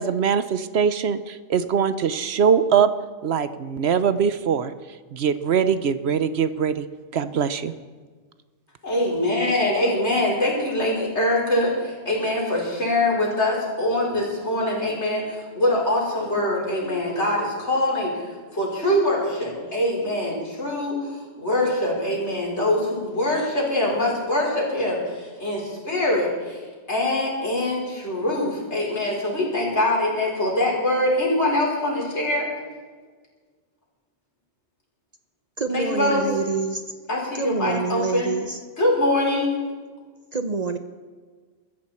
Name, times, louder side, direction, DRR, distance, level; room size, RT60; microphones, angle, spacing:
voice 1, 0.0-2.9 3.2-4.7 5.1-6.9 7.1-7.7, right 7 dB, 65° right, 13 dB, 1.0 m, -22 dB
voice 2, 8.8-26.6 26.9-32.5 35.7-36.3 37.1-38.3 38.8-39.6, left 1 dB, 70° left, -3 dB, 5.2 m, -23 dB
voice 3, 35.6-36.8 37.3-38.6 40.3-40.8, right 4 dB, 40° right, 8 dB, 0.8 m, -26 dB
23.0 x 14.0 x 4.4 m, 1.5 s
omnidirectional pair, 1.2 m